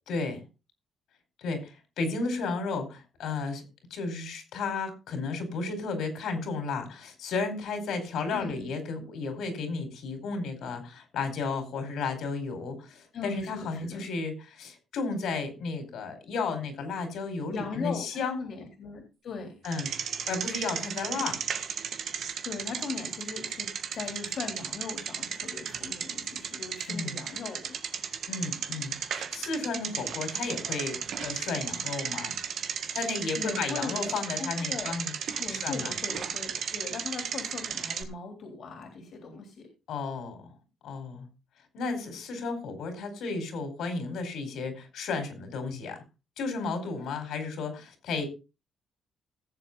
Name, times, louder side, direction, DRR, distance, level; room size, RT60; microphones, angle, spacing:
voice 1, 0.1-0.4 1.4-3.6 3.9-18.4 19.6-19.9 20.3-21.4 26.9-27.2 28.3-32.4 32.9-35.1 35.5-35.9 39.9-40.5 40.8-41.3 41.7-46.0 46.4-48.3, left 4 dB, 80° left, 7 dB, 4.7 m, -33 dB
voice 2, 8.3-8.6 13.1-14.0 17.5-19.5 22.4-27.8 33.3-34.9 35.4-39.7, left 5 dB, 60° left, 4 dB, 3.6 m, -39 dB
Bicycle, 19.6-38.0, right 7 dB, 65° right, 1.7 m, -35 dB
17.5 x 7.6 x 4.0 m, 0.29 s
cardioid pair, 90°, 0 cm